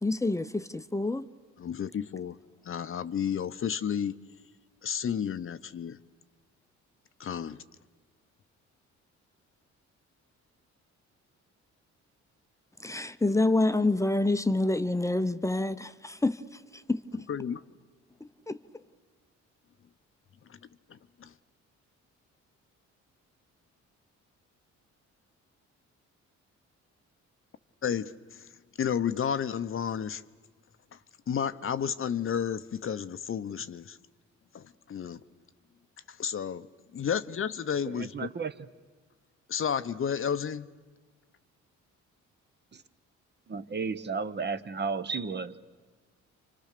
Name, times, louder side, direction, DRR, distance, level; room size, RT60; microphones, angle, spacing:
voice 1, 0.0-1.3 12.8-17.2 18.2-18.6, left 2 dB, 10° left, 0.8 m, -28 dB
voice 2, 1.6-2.4 2.6-4.2 4.8-6.0 7.2-7.6 17.3-17.6 20.5-20.6 20.9-21.3 27.8-28.5 28.8-30.2 30.9-31.0 31.3-34.0 34.5-35.2 36.1-36.7 36.9-38.3 39.5-40.7, left 8 dB, 45° left, 0.8 m, -32 dB
voice 3, 37.9-38.7 42.7-42.8 43.5-45.6, right 5 dB, 35° right, 1.0 m, -33 dB
29.0 x 25.5 x 6.7 m
cardioid pair, 90°, 30 cm